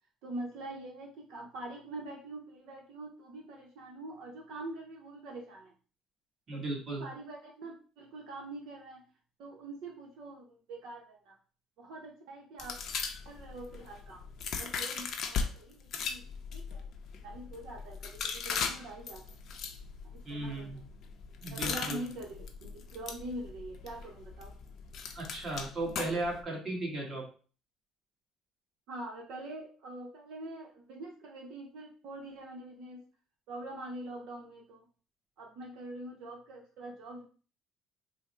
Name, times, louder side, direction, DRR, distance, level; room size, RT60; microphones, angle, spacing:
voice 1, 0.2-5.7 6.5-9.0 9.4-11.3 11.8-12.8 13.2-14.2 14.5-16.2 16.5-16.8 17.2-19.4 20.1-20.7 21.5-24.5 28.9-33.0 33.5-34.9 35.4-37.2, right 2 dB, 70° right, 0 dB, 0.7 m, -44 dB
voice 2, 6.5-7.1 20.2-20.8 21.4-22.0 25.1-27.3, right 2 dB, 30° right, -2 dB, 1.4 m, -36 dB
sound 1, 12.6-15.5 15.9-26.4, left 6 dB, 50° left, 0.5 m, -39 dB
3.5 x 2.0 x 4.3 m, 0.39 s
cardioid pair, 140°, 0 cm